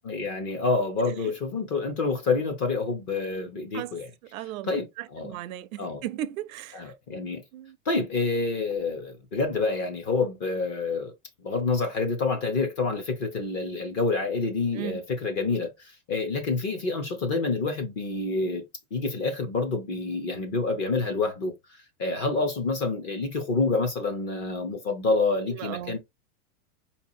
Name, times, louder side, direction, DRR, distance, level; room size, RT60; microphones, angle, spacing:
voice 1, 0.0-4.1 4.6-5.3 5.8-6.0 6.7-7.4 7.9-11.1 11.4-15.7 16.1-18.6 18.9-21.5 22.0-26.0, left 3 dB, 25° left, 0.4 m, -27 dB
voice 2, 4.3-6.8 7.5-7.8 14.7-15.0 25.5-26.0, right 12 dB, 70° right, 0.5 m, -36 dB
4.7 x 2.8 x 2.6 m
supercardioid pair, 165°, 43 cm